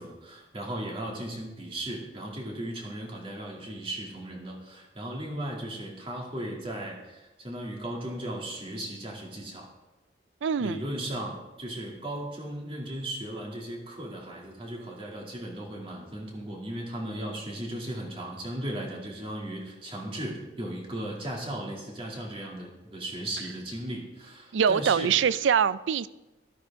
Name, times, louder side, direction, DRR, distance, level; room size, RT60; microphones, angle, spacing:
voice 1, 0.0-9.7 10.6-25.1, right 1 dB, 30° right, -1 dB, 2.5 m, -36 dB
voice 2, 10.4-10.8 24.5-26.1, right 7 dB, 90° right, 17 dB, 0.4 m, -24 dB
13.0 x 13.0 x 3.6 m, 1.0 s
head